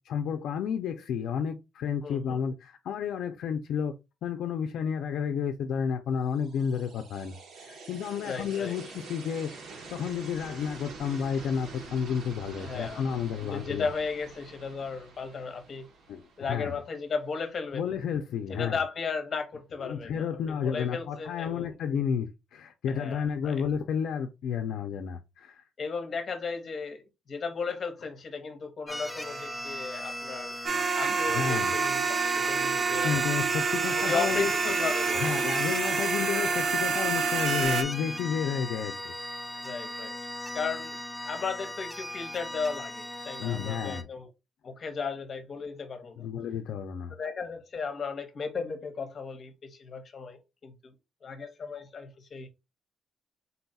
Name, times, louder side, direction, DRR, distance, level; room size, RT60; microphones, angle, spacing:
voice 1, 0.0-3.9 4.2-9.5 9.9-13.9 16.1-16.2 16.5-16.8 17.7-18.8 19.8-25.6 31.3-31.7 33.0-34.7 35.2-39.1 43.4-44.1 46.2-47.1, left 7 dB, 75° left, 0.4 m, -31 dB
voice 2, 2.0-2.4 8.2-8.8 12.6-13.0 13.4-15.9 16.4-17.9 18.5-21.7 22.9-23.6 25.8-30.6 31.0-33.2 34.0-35.6 39.6-40.1 40.5-41.0 41.3-44.3 44.6-46.3 47.1-50.9 51.2-52.5, left 5 dB, 40° left, 1.0 m, -35 dB
sound 1, 6.2-17.3, right 3 dB, 70° right, 1.1 m, -47 dB
sound 2, 28.9-44.0, left 1 dB, ahead, 0.4 m, -38 dB
sound 3, 30.6-37.8, right 5 dB, 50° right, 0.7 m, -27 dB
4.0 x 2.3 x 4.0 m
cardioid pair, 150°, 0 cm